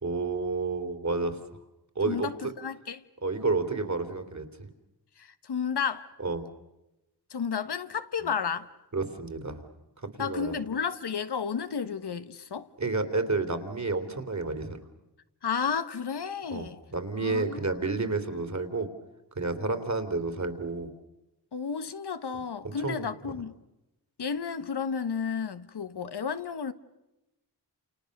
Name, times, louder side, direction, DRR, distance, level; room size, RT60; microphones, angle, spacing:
voice 1, 0.0-1.4 1.9-2.5 3.2-4.5 6.2-6.4 8.9-9.6 10.2-10.6 12.8-14.8 16.5-18.9 19.3-20.9 22.6-23.0, right 3 dB, 45° right, 3.4 m, -30 dB
voice 2, 2.0-3.0 5.2-6.1 7.3-8.7 10.2-12.7 15.4-16.8 17.2-17.6 21.5-23.5 24.2-26.7, left 6 dB, 75° left, 1.3 m, -32 dB
29.0 x 29.0 x 6.7 m
wide cardioid pair, 75°, 40 cm